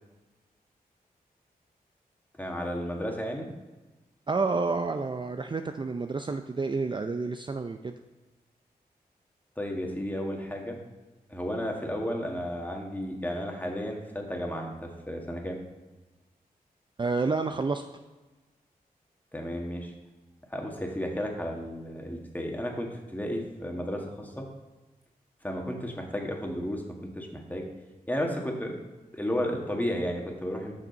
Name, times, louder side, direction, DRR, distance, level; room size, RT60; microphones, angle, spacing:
voice 1, 2.4-3.5 9.6-10.8 11.3-15.6 19.3-19.9 20.5-24.5 25.4-26.8 27.2-27.7 28.1-28.8 29.1-30.7, equal, 10° left, 1 dB, 1.7 m, -33 dB
voice 2, 4.3-7.9 17.0-17.9, right 4 dB, 30° right, 7 dB, 0.4 m, -29 dB
6.7 x 6.1 x 5.3 m, 1.2 s
cardioid pair, 45°, 16 cm